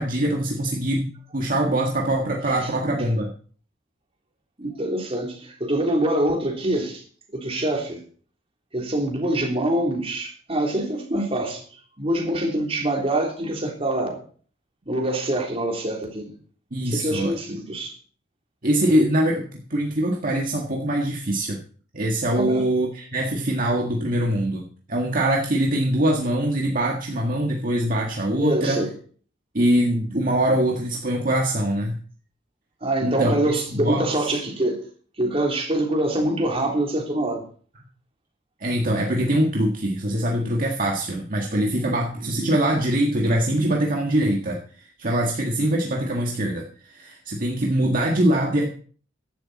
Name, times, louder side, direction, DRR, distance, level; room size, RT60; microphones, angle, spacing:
voice 1, 0.0-3.3 16.7-17.6 18.6-21.6 21.9-28.8 29.5-32.0 33.0-34.3 38.6-48.7, right 1 dB, 45° right, 1.8 m, -23 dB
voice 2, 4.6-7.0 7.3-8.0 8.7-11.6 12.0-14.2 14.9-16.3 16.8-17.9 22.3-22.7 28.4-28.9 32.8-34.8 35.2-37.4 42.2-42.6, right 1 dB, 30° right, 3.5 m, -25 dB
15.0 x 11.5 x 4.2 m
head